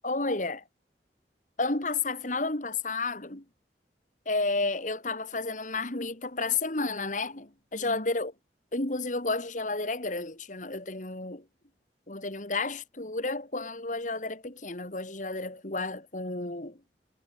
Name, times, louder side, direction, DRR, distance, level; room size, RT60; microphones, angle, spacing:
voice 1, 0.0-0.6 1.6-3.4 4.3-8.3 8.7-11.4 12.1-16.8, left 3 dB, 45° left, 2.5 m, -31 dB
head